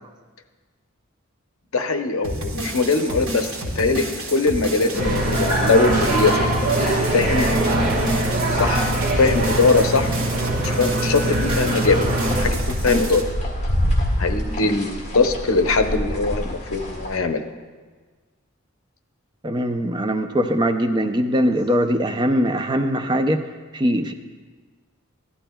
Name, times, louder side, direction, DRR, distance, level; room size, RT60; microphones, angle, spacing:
voice 1, 1.7-3.5 3.8-6.5 7.1-7.9 8.5-10.1 10.6-13.3 14.2-17.4, left 3 dB, 75° left, 6 dB, 0.7 m, -21 dB
sound 1, 2.2-13.2, right 1 dB, 85° right, 1.9 m, -30 dB
sound 2, 4.9-12.4, right 1 dB, 35° right, 1.6 m, -22 dB
sound 3, 11.7-17.2, equal, 30° left, 1.8 m, -26 dB
voice 2, 19.4-23.4 23.7-24.1, equal, 20° right, 6 dB, 0.4 m, -21 dB
15.0 x 12.0 x 2.3 m, 1.4 s
head